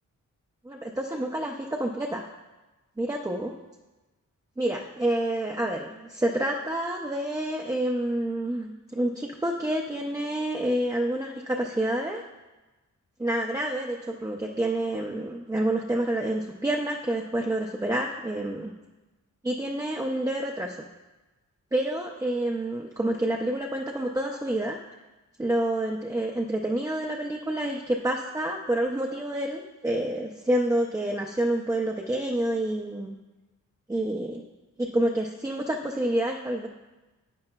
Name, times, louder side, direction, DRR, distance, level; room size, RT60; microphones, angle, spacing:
voice 1, 0.6-2.3 3.0-3.5 4.6-12.2 13.2-18.7 19.4-20.8 21.7-24.8 25.4-33.1 33.9-34.4 34.8-36.7, right 1 dB, 10° right, 0 dB, 0.4 m, -28 dB
11.5 x 8.8 x 2.2 m, 1.1 s
wide cardioid pair, 155°, 31 cm